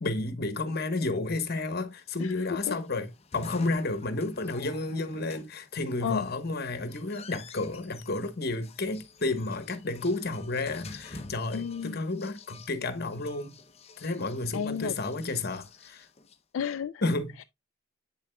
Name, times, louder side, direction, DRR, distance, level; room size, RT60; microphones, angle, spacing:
voice 1, 0.0-3.1 3.3-13.6 14.0-16.1 17.0-17.4, left 2 dB, 50° left, 1.1 m, -31 dB
sound 1, 2.1-16.4, left 3 dB, 30° left, 0.7 m, -49 dB
voice 2, 2.2-3.0 6.0-6.3 11.5-12.0 14.5-15.0 16.5-17.0 17.4-17.5, left 7 dB, 70° left, 0.3 m, -33 dB
8.5 x 7.0 x 2.2 m
head